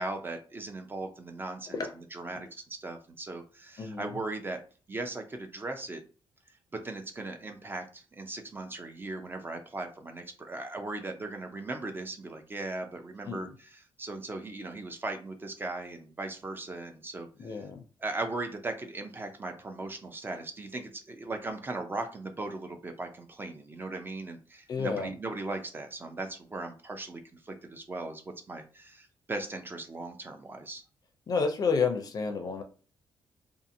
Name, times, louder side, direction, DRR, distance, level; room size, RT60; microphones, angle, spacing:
voice 1, 0.0-1.8 2.1-4.6 4.9-6.0 6.7-13.5 14.0-17.3 17.6-17.7 18.0-28.2 28.5-30.8, right 2 dB, 20° right, 0.4 m, -38 dB
voice 2, 3.8-4.2 13.3-13.5 17.4-17.8 24.7-25.1 31.3-32.6, left 5 dB, 40° left, 0.4 m, -30 dB
2.6 x 2.4 x 2.6 m
wide cardioid pair, 150°, 10 cm